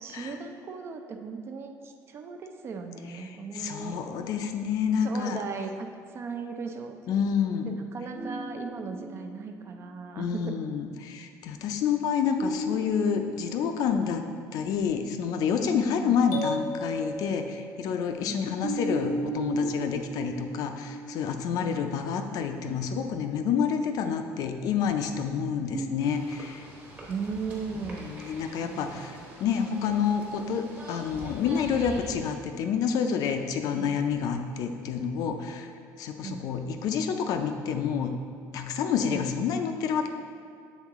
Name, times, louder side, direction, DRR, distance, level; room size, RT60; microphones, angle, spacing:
voice 1, 0.0-4.0 5.0-5.9 6.1-7.2 7.7-10.5 15.7-16.2 18.3-18.5 21.6-21.8 27.1-28.1 28.6-29.2 33.7-33.9 36.2-36.5 39.1-39.3, right 5 dB, 35° right, 5 dB, 0.4 m, -37 dB
voice 2, 3.5-5.4 7.1-7.7 10.2-14.2 14.5-26.6 28.0-35.7 36.0-38.2 38.5-40.1, left 7 dB, 60° left, 6 dB, 0.4 m, -28 dB
sound 1, 8.1-10.2 12.4-14.5 14.9-15.0 18.6-21.8 25.7-26.5, right 2 dB, 60° right, 1.1 m, -36 dB
sound 2, 16.3-18.2, left 1 dB, 85° left, 0.7 m, -35 dB
sound 3, 26.0-32.3, right 1 dB, 20° right, 1.0 m, -44 dB
7.3 x 3.8 x 3.6 m, 2.3 s
cardioid pair, 155°, 7 cm